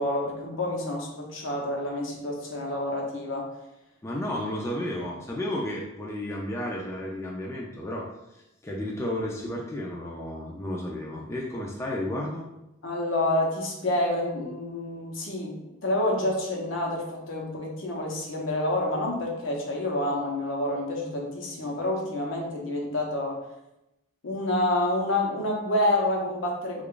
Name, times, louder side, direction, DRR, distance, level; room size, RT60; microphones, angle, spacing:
voice 1, 0.0-3.5 12.8-15.6 15.8-23.4 24.2-26.8, left 1 dB, 65° left, -1 dB, 0.8 m, -28 dB
voice 2, 4.0-8.1 8.6-12.4, left 1 dB, 15° left, -3 dB, 0.4 m, -32 dB
3.3 x 2.4 x 3.7 m, 0.90 s
head